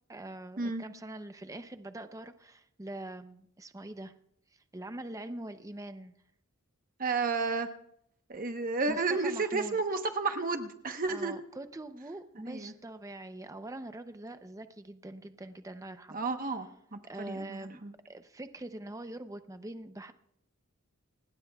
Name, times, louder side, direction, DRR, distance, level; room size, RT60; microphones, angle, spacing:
voice 1, 0.1-4.1 4.5-6.1 8.9-9.8 11.1-16.2 17.0-17.8 18.1-20.1, right 1 dB, 15° right, 9 dB, 0.6 m, -43 dB
voice 2, 7.0-7.7 8.3-11.3 12.4-12.7 16.1-16.7 16.9-17.9, right 3 dB, 40° right, 6 dB, 1.0 m, -32 dB
27.0 x 20.0 x 2.3 m, 0.73 s
head